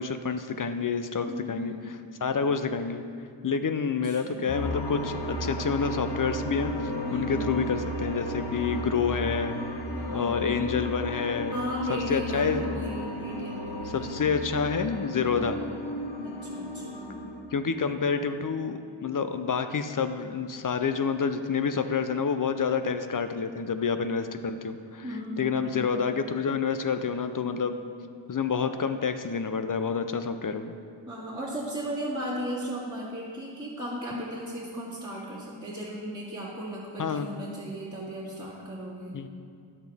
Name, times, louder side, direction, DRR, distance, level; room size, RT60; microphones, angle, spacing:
voice 1, 0.0-1.7 2.2-3.0 3.4-6.7 7.1-9.5 10.1-11.5 11.9-12.6 13.9-15.6 17.5-25.0 25.4-27.8 28.3-30.8 37.0-37.3 39.1-39.3, left 6 dB, 45° left, 9 dB, 0.5 m, -28 dB
voice 2, 1.3-1.9 4.0-4.6 7.1-7.6 9.9-10.7 11.5-14.2 15.1-15.4 16.2-17.3 25.0-25.9 31.1-39.2, equal, 10° right, -11 dB, 2.0 m, -36 dB
sound 1, 4.5-17.4, equal, 60° left, 1.2 m, -34 dB
11.0 x 8.0 x 3.5 m, 2.3 s
cardioid pair, 50°, 48 cm